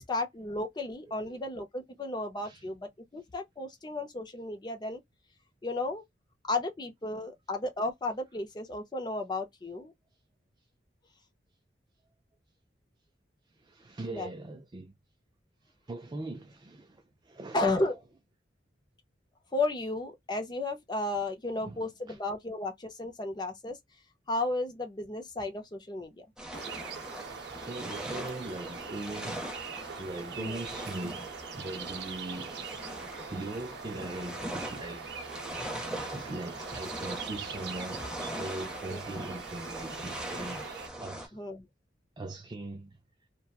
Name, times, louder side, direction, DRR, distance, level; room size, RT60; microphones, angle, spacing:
voice 1, 0.0-5.0 5.6-6.0 6.5-9.9 14.1-14.3 17.5-18.0 19.5-23.8 24.3-26.2 30.4-30.6 38.9-39.0 41.3-41.7, left 2 dB, 25° left, 0.6 m, -33 dB
voice 2, 1.1-1.4 2.4-2.7 13.5-14.9 15.6-17.7 21.6-22.2 27.0-29.4 30.0-31.3 31.5-32.7 33.0-40.7 41.0-41.4 42.2-43.0, right 2 dB, 25° right, 0.3 m, -41 dB
sound 1, 26.4-41.3, right 1 dB, 5° right, 0.8 m, -41 dB
sound 2, 26.5-40.9, right 6 dB, 65° right, 0.6 m, -43 dB
2.9 x 2.2 x 2.3 m
head